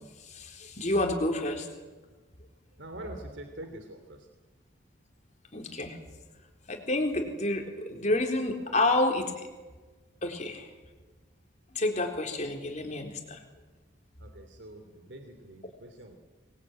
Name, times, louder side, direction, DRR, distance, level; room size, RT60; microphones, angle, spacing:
voice 1, 0.2-1.7 5.5-6.0 6.7-9.5 10.2-10.7 11.7-13.4, left 2 dB, 40° left, 3 dB, 4.0 m, -29 dB
voice 2, 2.8-4.3 14.2-16.2, right 1 dB, 70° right, 6 dB, 3.0 m, -45 dB
26.0 x 21.0 x 9.2 m, 1.3 s
head